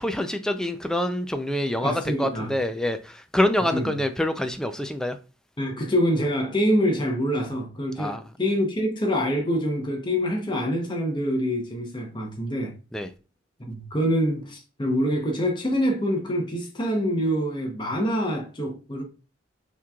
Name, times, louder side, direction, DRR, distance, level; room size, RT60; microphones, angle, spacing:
voice 1, 0.0-5.2 8.0-8.2 12.9-13.1, left 1 dB, 5° left, 0.3 m, -26 dB
voice 2, 1.8-2.5 3.7-4.0 5.6-12.7 13.6-19.0, equal, 25° left, 0.8 m, -25 dB
5.8 x 3.1 x 2.3 m
head